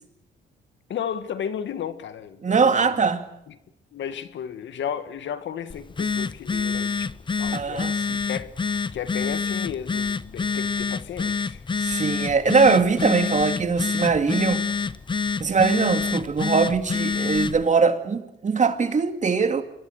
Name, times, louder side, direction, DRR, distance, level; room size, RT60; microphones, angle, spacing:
voice 1, 0.9-3.1 3.5-3.6 3.9-7.1 7.4-8.5 8.9-11.6, left 8 dB, 70° left, 1.9 m, -34 dB
voice 2, 2.4-3.2 7.5-8.2 11.8-14.6 15.4-19.6, right 5 dB, 35° right, 2.4 m, -21 dB
Telephone, 5.7-17.6, left 5 dB, 25° left, 0.8 m, -27 dB
27.0 x 21.5 x 6.6 m
cardioid pair, 90°, 20 cm